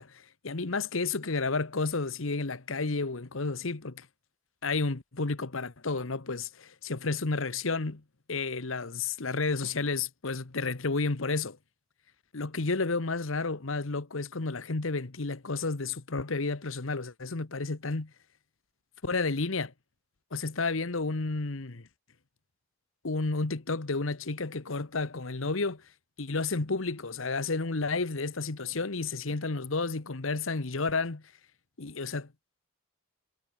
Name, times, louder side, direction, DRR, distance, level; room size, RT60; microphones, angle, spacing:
voice 1, 0.0-4.1 4.6-8.0 8.3-11.6 12.3-18.1 19.0-19.7 20.3-21.8 23.0-25.8 26.2-31.2 31.8-32.3, left 3 dB, 75° left, 1.2 m, -31 dB
head